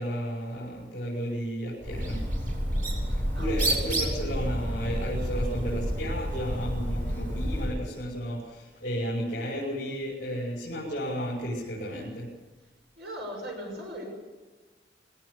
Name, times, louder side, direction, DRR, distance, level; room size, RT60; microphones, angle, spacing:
voice 1, 0.0-2.2 3.4-12.3, equal, 45° left, -5 dB, 5.9 m, -33 dB
Bird, 1.8-7.8, equal, 45° right, 7.0 m, -29 dB
voice 2, 3.3-3.7 13.0-14.1, equal, 65° right, 0 dB, 6.4 m, -38 dB
21.5 x 18.0 x 8.3 m, 1.2 s
head